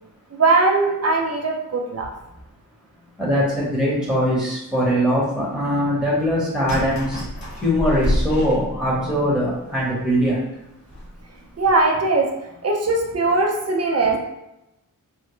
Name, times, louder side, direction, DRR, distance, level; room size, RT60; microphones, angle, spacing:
voice 1, 0.3-2.1 11.6-12.3 12.6-14.2, right 3 dB, 45° right, 1 dB, 0.6 m, -20 dB
voice 2, 3.2-7.2 7.6-10.4, equal, ahead, -7 dB, 1.2 m, -21 dB
sound 1, 6.7-9.2 9.8-9.9 10.1-10.2 10.9-11.2 11.5-11.8, equal, 75° left, 1.4 m, -27 dB
3.5 x 2.1 x 3.1 m, 0.89 s
wide cardioid pair, 60°, 35 cm